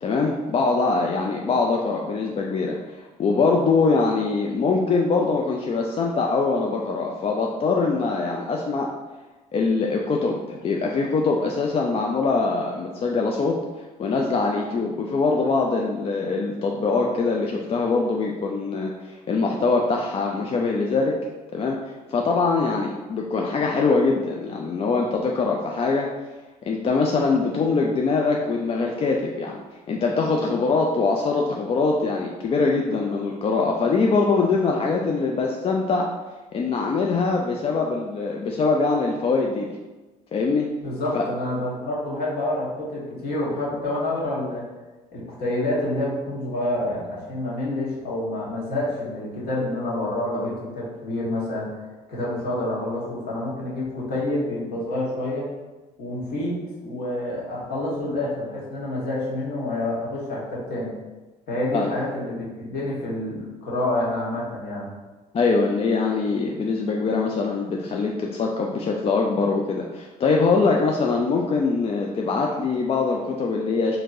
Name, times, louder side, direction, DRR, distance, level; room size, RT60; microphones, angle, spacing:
voice 1, 0.0-8.9 9.5-13.6 14.0-21.2 21.5-26.1 26.6-29.6 29.9-36.1 36.5-39.7 40.3-40.7 41.1-41.2 61.7-62.0 65.3-74.0, left 4 dB, 30° left, 0 dB, 0.4 m, -23 dB
voice 2, 40.8-44.6 45.1-51.7 52.1-55.5 56.0-60.9 61.5-64.9, left 1 dB, 55° left, -6 dB, 1.5 m, -28 dB
4.3 x 2.7 x 2.5 m, 1.2 s
hypercardioid pair, 55°, 20 cm